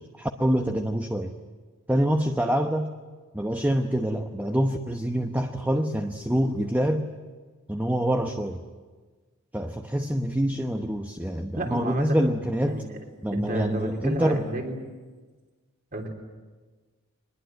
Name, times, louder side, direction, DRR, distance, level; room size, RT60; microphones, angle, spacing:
voice 1, 0.0-1.3 1.9-2.9 3.3-7.1 7.7-8.6 9.5-12.8 13.2-14.5, equal, 10° right, 5 dB, 0.9 m, -26 dB
voice 2, 11.5-12.2 12.6-13.0 13.3-14.8 15.9-16.1, right 1 dB, 40° right, 2 dB, 3.7 m, -32 dB
23.5 x 21.0 x 9.1 m, 1.4 s
head